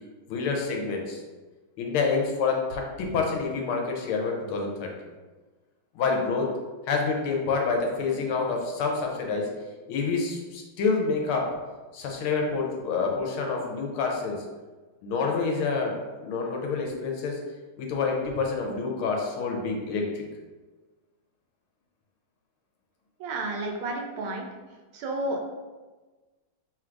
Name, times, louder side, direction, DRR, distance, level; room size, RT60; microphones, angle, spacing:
voice 1, 0.3-1.2 1.8-4.9 5.9-6.5 6.9-9.5 9.9-11.5 11.9-14.4 15.0-17.4 17.8-20.2, left 4 dB, 90° left, 1 dB, 1.7 m, -27 dB
voice 2, 23.2-24.5 24.9-25.4, right 2 dB, 85° right, 2 dB, 1.5 m, -31 dB
3.9 x 2.5 x 4.5 m, 1.3 s
omnidirectional pair, 2.3 m